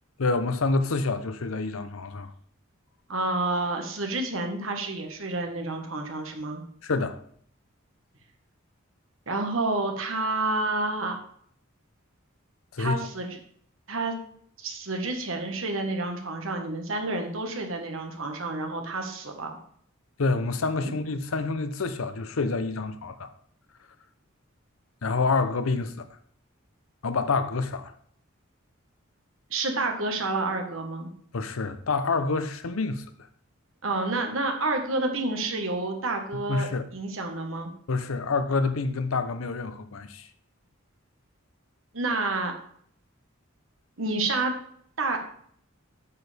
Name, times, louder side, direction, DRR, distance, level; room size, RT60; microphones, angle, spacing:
voice 1, 0.2-2.3 6.8-7.2 12.7-13.0 20.2-23.3 25.0-26.1 27.0-27.9 31.3-33.0 36.3-36.9 37.9-40.3, left 3 dB, 80° left, 0.7 m, -27 dB
voice 2, 3.1-6.6 9.3-11.2 12.8-13.4 13.9-14.1 14.6-19.6 20.8-20.9 29.5-31.1 33.8-37.7 41.9-42.5 44.0-44.5 45.0-45.2, right 2 dB, 70° right, 1.5 m, -29 dB
8.4 x 6.7 x 3.4 m
head